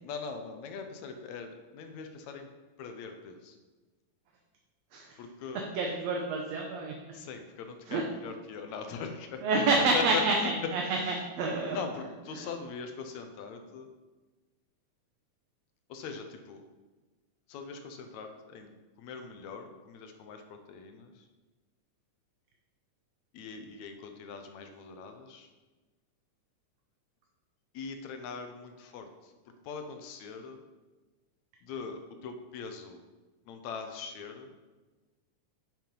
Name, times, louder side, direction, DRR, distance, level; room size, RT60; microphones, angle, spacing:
voice 1, 0.0-2.5 2.8-3.6 5.2-5.7 7.1-10.5 10.8-11.2 11.7-13.9 15.9-16.6 17.5-21.3 23.3-25.5 27.7-29.3 29.6-30.6 31.6-33.0 33.5-34.5, left 5 dB, 70° left, 6 dB, 2.1 m, -41 dB
voice 2, 5.7-6.9 7.9-8.0 9.4-11.0 11.4-11.8 12.4-12.5, right 3 dB, 70° right, 1 dB, 1.9 m, -28 dB
7.7 x 7.6 x 5.3 m, 1.2 s
omnidirectional pair, 3.5 m